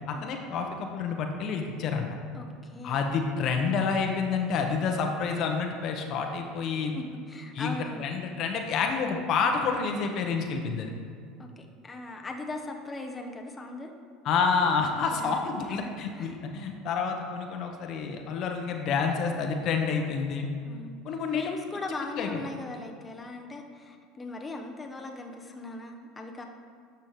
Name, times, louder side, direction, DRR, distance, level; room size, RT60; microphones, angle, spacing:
voice 1, 0.1-2.1 2.8-6.9 7.5-10.9 14.2-20.5 21.0-21.5 22.1-22.4, left 5 dB, 55° left, 3 dB, 0.9 m, -28 dB
voice 2, 2.3-3.1 6.9-8.1 11.4-13.9 15.1-16.4 20.6-21.0 21.3-26.4, left 2 dB, 20° left, 2 dB, 0.8 m, -39 dB
11.5 x 5.6 x 3.1 m, 2.2 s
hypercardioid pair, 75°, 0 cm